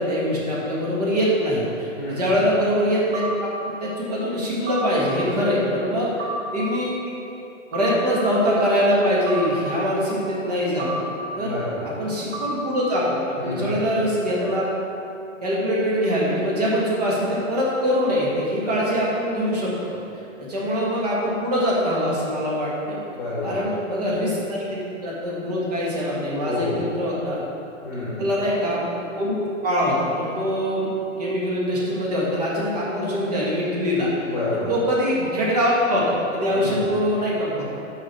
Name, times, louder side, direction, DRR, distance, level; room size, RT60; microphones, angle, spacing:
voice 1, 0.0-7.2 7.7-11.0 11.4-11.5 12.0-14.7 15.4-20.0 20.5-23.0 23.4-27.4 28.2-28.9 29.2-30.9 31.2-34.3 34.7-37.6, equal, 30° right, -5 dB, 1.8 m, -23 dB
voice 2, 2.0-2.3 11.4-11.9 13.4-13.8 23.1-23.6 26.4-26.8 27.8-28.2 34.2-34.7 36.5-36.8, left 2 dB, 20° left, -9 dB, 1.4 m, -29 dB
sound 1, 3.1-3.3 4.7-4.9 6.2-6.4 7.7-7.9 9.3-9.5 10.8-11.0 12.3-12.5, right 2 dB, 60° right, 1.8 m, -30 dB
6.4 x 6.2 x 7.1 m, 2.8 s
hypercardioid pair, 175°, 40 cm